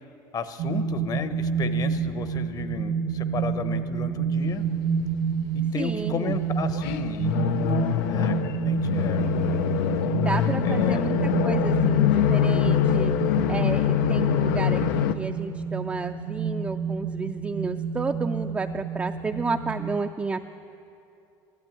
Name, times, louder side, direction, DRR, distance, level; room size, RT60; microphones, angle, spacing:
voice 1, 0.3-4.6 5.5-9.3 10.6-11.0, left 6 dB, 40° left, 11 dB, 0.9 m, -33 dB
sound 1, 0.6-20.0, right 6 dB, 75° right, 1.5 m, -29 dB
voice 2, 5.7-6.3 10.2-13.1 13.5-20.5, right 4 dB, 15° right, 5 dB, 0.4 m, -31 dB
sound 2, 6.7-15.1, left 11 dB, 90° left, 0.6 m, -24 dB
13.0 x 12.0 x 9.0 m, 2.7 s
supercardioid pair, 110°, 10 cm